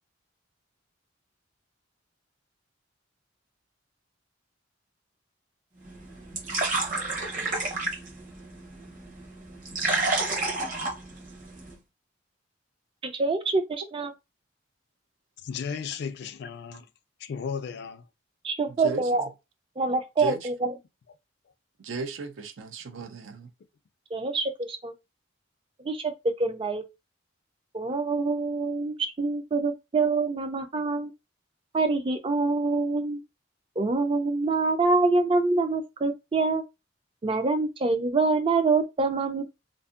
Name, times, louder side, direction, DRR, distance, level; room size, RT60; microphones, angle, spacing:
sound 1, 5.8-11.8, right 2 dB, 45° right, 0.9 m, -31 dB
voice 1, 13.0-14.1 18.4-19.3 19.8-20.7 24.1-24.9 25.8-26.1 26.4-26.8 27.7-31.1 31.7-33.2 33.8-36.6 37.2-39.4, right 3 dB, 30° right, 0.4 m, -25 dB
voice 2, 15.4-16.9 17.2-18.1, left 6 dB, 60° left, 0.3 m, -35 dB
voice 3, 18.7-19.0 20.2-20.5 21.8-23.5, right 3 dB, 85° right, 0.5 m, -36 dB
2.6 x 2.5 x 2.4 m
head